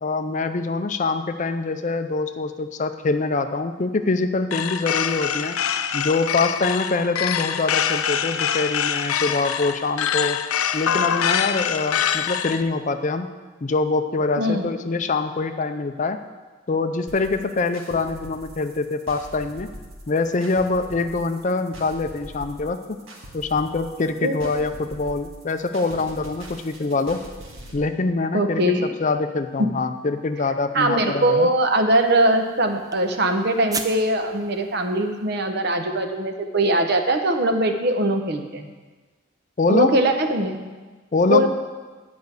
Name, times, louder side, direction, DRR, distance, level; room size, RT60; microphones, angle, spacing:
voice 1, 0.0-5.6 5.9-10.5 10.7-13.3 13.6-16.2 16.7-19.7 20.1-23.0 23.3-27.2 27.7-28.6 29.0-31.5 39.6-40.0 41.1-41.5, left 3 dB, 35° left, 9 dB, 0.4 m, -24 dB
sound 1, 4.5-12.6, left 8 dB, 90° left, 0.5 m, -24 dB
voice 2, 14.4-14.7 24.2-24.5 28.3-28.9 29.6-29.7 30.7-38.7 39.7-40.6 41.3-41.5, right 1 dB, 50° right, 6 dB, 0.9 m, -21 dB
sound 2, 17.1-27.7, right 1 dB, 75° right, 1.8 m, -42 dB
sound 3, 31.9-35.5, right 4 dB, 15° right, 0.5 m, -38 dB
10.5 x 5.2 x 8.2 m, 1.3 s
head